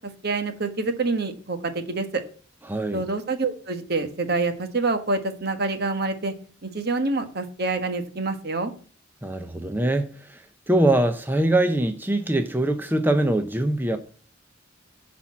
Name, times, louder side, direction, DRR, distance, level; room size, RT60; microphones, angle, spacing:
voice 1, 0.2-2.2 2.9-6.3 6.6-8.7, right 3 dB, 55° right, 1.3 m, -26 dB
voice 2, 2.7-3.0 9.2-14.0, right 1 dB, 10° right, 0.6 m, -23 dB
10.0 x 4.3 x 7.3 m
head